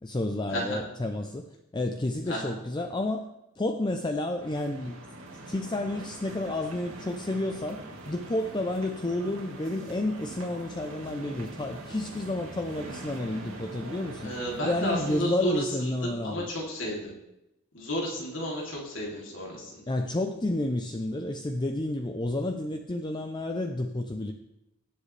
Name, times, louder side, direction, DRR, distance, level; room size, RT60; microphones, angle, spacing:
voice 1, 0.0-1.4 1.7-3.3 3.6-5.0 5.5-14.3 14.6-16.5 19.9-24.3, left 1 dB, 20° left, 5 dB, 0.5 m, -30 dB
sound 1, 4.4-15.2, right 2 dB, 90° right, 2.2 m, -43 dB
voice 2, 14.2-15.5 15.8-17.1 17.7-19.8, equal, 65° left, -3 dB, 2.9 m, -32 dB
17.5 x 7.4 x 3.3 m, 0.88 s
head